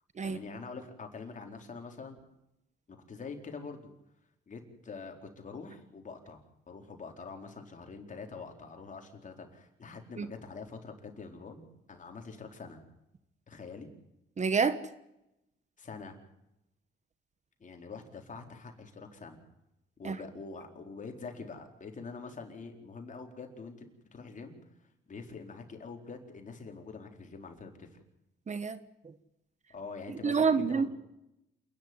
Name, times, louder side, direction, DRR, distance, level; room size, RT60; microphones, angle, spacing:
voice 1, 0.2-2.2 2.9-3.9 4.5-12.8 13.5-13.9 15.8-16.2 17.6-19.4 20.0-23.9 24.1-24.6 25.1-28.0 29.7-30.9, left 4 dB, 40° left, 4.3 m, -45 dB
voice 2, 14.4-14.8 20.0-20.2 28.5-28.8 29.0-29.1 30.1-30.9, right 5 dB, 35° right, 1.3 m, -28 dB
28.0 x 10.5 x 9.8 m
cardioid pair, 90°, 20 cm